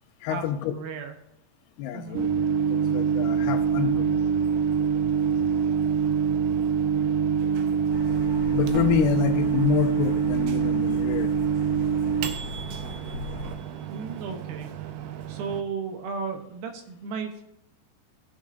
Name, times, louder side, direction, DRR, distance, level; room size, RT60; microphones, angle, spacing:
voice 1, 0.2-0.7 1.8-2.3 2.7-4.1 8.5-11.3, left 10 dB, 80° left, 8 dB, 2.7 m, -27 dB
voice 2, 0.7-1.2 1.9-2.2 13.9-14.7 15.3-17.4, right 5 dB, 75° right, 5 dB, 2.5 m, -34 dB
Microwave oven, 2.1-15.6, right 7 dB, 90° right, 2.8 m, -25 dB
Truck, 7.9-13.5, left 1 dB, 40° right, 3.9 m, -38 dB
16.0 x 7.1 x 2.6 m, 0.85 s
omnidirectional pair, 4.7 m